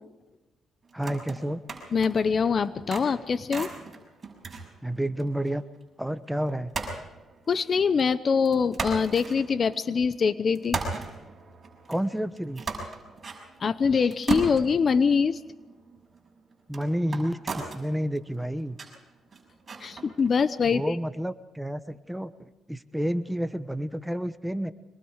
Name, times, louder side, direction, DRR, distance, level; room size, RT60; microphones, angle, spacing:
voice 1, 0.9-1.6 4.8-5.6 6.0-6.7 11.9-12.6 16.7-18.8 20.7-24.7, equal, 5° right, 12 dB, 1.1 m, -30 dB
sound 1, 0.9-2.3 2.7-5.5 5.8-5.9 6.7-8.1 8.5-10.1 10.5-20.4, right 4 dB, 35° right, 6.3 m, -37 dB
voice 2, 1.9-3.7 7.5-10.8 13.6-15.4 19.8-21.0, left 5 dB, 45° left, 15 dB, 0.9 m, -24 dB
24.0 x 22.0 x 4.9 m, 1.1 s
cardioid pair, 90°, 0 cm